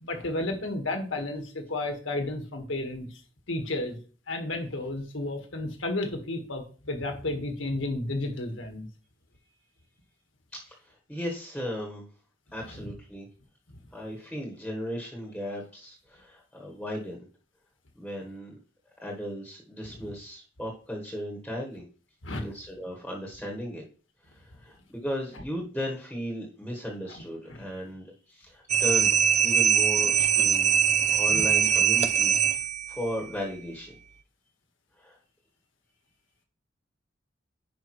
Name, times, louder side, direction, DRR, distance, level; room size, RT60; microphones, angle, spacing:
voice 1, 0.0-3.1 3.5-4.0 4.3-8.8 12.7-12.8 22.2-22.4 27.1-27.2 27.5-27.6 31.3-31.5, left 2 dB, 75° left, 4 dB, 1.6 m, -32 dB
voice 2, 10.5-12.0 12.5-13.3 13.9-17.3 17.9-18.5 19.0-21.8 22.4-23.8 24.3-29.1 29.4-30.8 31.1-32.6 32.9-33.9 35.0-35.2, equal, 5° left, -1 dB, 1.3 m, -36 dB
sound 1, 28.7-33.0, right 8 dB, 35° right, 0.4 m, -22 dB
10.5 x 5.1 x 3.1 m, 0.39 s
head